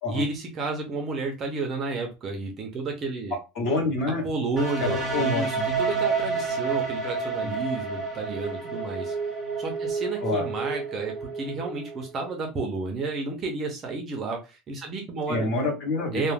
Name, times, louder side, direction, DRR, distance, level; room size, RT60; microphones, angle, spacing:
voice 1, 0.1-3.3 4.2-9.2 9.6-15.5 16.1-16.3, right 3 dB, 25° right, 2 dB, 0.4 m, -31 dB
voice 2, 3.6-4.3 4.8-5.5 7.4-7.5 10.2-10.5 15.3-16.2, left 2 dB, 40° left, 1 dB, 0.9 m, -27 dB
sound 1, 4.6-12.3, right 4 dB, ahead, 1.0 m, -29 dB
2.2 x 2.1 x 3.2 m, 0.27 s
cardioid pair, 180°, 0 cm